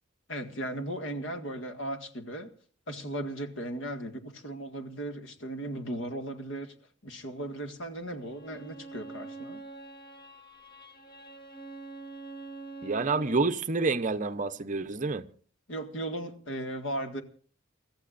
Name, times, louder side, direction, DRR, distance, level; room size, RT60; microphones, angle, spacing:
voice 1, 0.3-2.5 2.9-6.7 7.0-9.6 15.7-17.2, right 1 dB, 70° left, 1.8 m, -36 dB
Bowed string instrument, 8.2-13.5, right 3 dB, 25° left, 1.4 m, -45 dB
voice 2, 12.8-15.3, right 3 dB, 40° right, 0.7 m, -28 dB
29.5 x 14.5 x 2.5 m
head